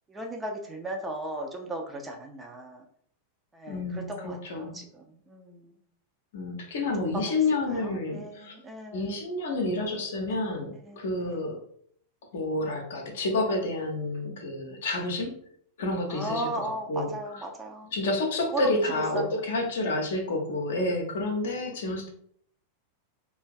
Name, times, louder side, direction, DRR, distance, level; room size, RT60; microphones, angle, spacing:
voice 1, 0.1-2.8 3.5-5.7 7.0-7.3 7.7-9.2 10.8-11.0 11.3-11.5 16.1-17.9 18.5-19.4, right 1 dB, 15° right, 2 dB, 0.4 m, -36 dB
voice 2, 3.7-4.8 6.3-8.6 8.9-11.6 12.3-15.4 15.8-16.5 16.9-17.1 17.9-22.1, left 2 dB, 60° left, 2 dB, 0.6 m, -29 dB
2.5 x 2.2 x 2.3 m, 0.63 s
figure-of-eight pair, 90°, 0 cm